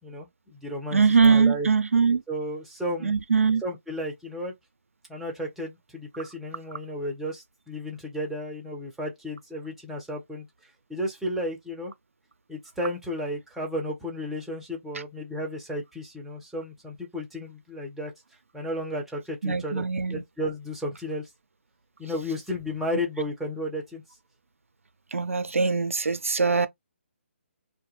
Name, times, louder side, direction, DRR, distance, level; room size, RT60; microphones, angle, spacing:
voice 1, 0.0-1.7 2.3-3.2 3.6-4.5 5.1-10.5 10.9-11.9 12.5-18.1 18.5-21.3 22.0-24.0, equal, 5° right, 0.6 m, -33 dB
voice 2, 0.9-2.2 3.0-3.6 19.4-20.2 25.1-26.7, right 5 dB, 85° right, 0.4 m, -22 dB
2.2 x 2.2 x 2.9 m
figure-of-eight pair, 145°, 7 cm